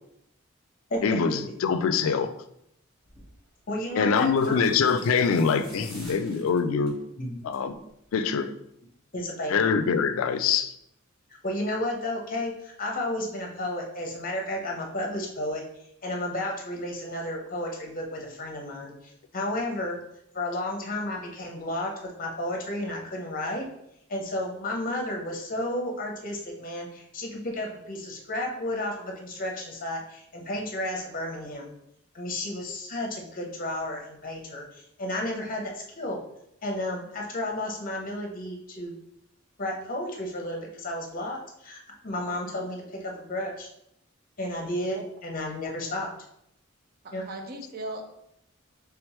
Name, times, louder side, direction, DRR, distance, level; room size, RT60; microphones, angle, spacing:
voice 1, 1.0-2.3 4.0-6.9 7.4-7.8 8.1-8.5 9.5-10.7, left 6 dB, 80° left, 10 dB, 0.3 m, -24 dB
sound 1, 3.0-3.3 4.1-7.0 7.4-7.7 8.0-8.1, equal, 25° right, 1.2 m, -48 dB
voice 2, 3.7-4.7 7.2-7.4 9.1-9.7 11.4-15.6 16.0-20.0 20.3-23.7 24.1-31.7 32.1-36.2 36.6-38.9 39.6-43.7 44.4-46.1 47.1-47.2, left 1 dB, 40° left, 1 dB, 0.8 m, -32 dB
voice 3, 47.0-48.1, right 1 dB, 45° right, 4 dB, 0.5 m, -37 dB
3.4 x 3.4 x 3.0 m, 0.77 s
head